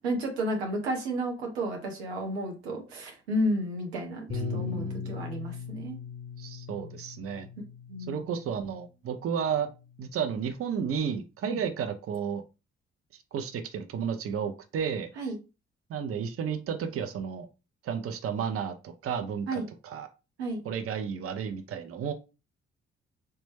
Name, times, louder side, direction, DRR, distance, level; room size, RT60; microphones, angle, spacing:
voice 1, 0.0-6.0 7.9-8.2 11.5-11.6 15.2-15.4 19.5-19.7 20.4-20.6, right 1 dB, 90° right, 2 dB, 0.6 m, -32 dB
Bass guitar, 4.3-8.8 9.6-10.6, left 8 dB, 35° left, 0.5 m, -39 dB
voice 2, 4.3-5.2 6.4-7.5 8.1-9.7 10.0-12.4 13.3-15.1 15.9-17.5 17.8-20.1 20.6-22.1, right 7 dB, 45° right, 7 dB, 0.6 m, -32 dB
3.0 x 2.2 x 3.2 m, 0.29 s
hypercardioid pair, 40°, 31 cm